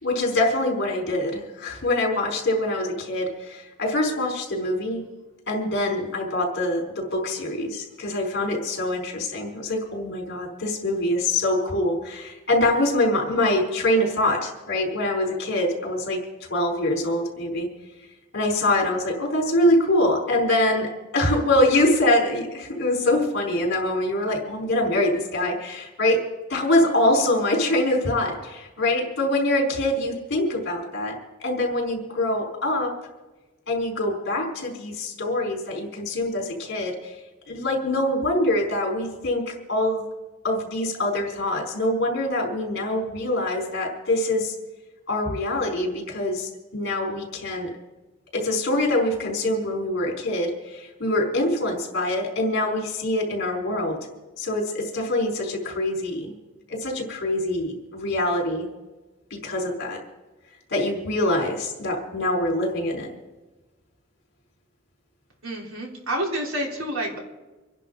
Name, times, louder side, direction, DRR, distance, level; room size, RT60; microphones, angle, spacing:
voice 1, 0.0-5.0 5.5-16.2 16.5-17.7 18.3-26.2 26.5-32.9 33.7-37.1 37.5-40.0 40.4-44.5 45.1-47.7 48.3-54.0 54.4-56.3 56.7-58.7 59.3-60.0 60.7-63.1, left 1 dB, 55° left, -1 dB, 4.6 m, -24 dB
voice 2, 65.4-67.2, right 1 dB, 80° right, -2 dB, 3.9 m, -28 dB
26.5 x 11.0 x 4.0 m, 1.2 s
head